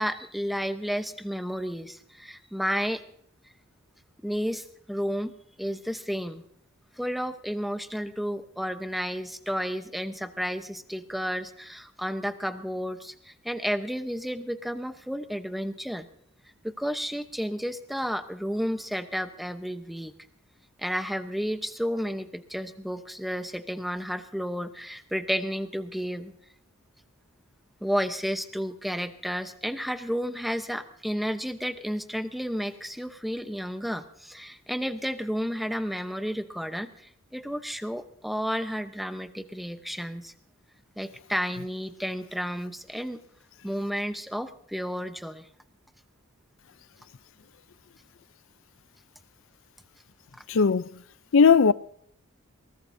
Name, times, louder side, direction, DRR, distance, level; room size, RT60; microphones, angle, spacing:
voice 1, 0.0-3.0 4.2-5.3 5.6-6.4 7.0-16.1 16.6-20.1 20.8-26.3 27.8-40.3 41.0-43.2 43.6-45.5, equal, ahead, 0.8 m, -32 dB
voice 2, 50.5-51.0 51.3-51.7, left 5 dB, 70° left, 0.5 m, -18 dB
22.0 x 19.0 x 2.7 m
head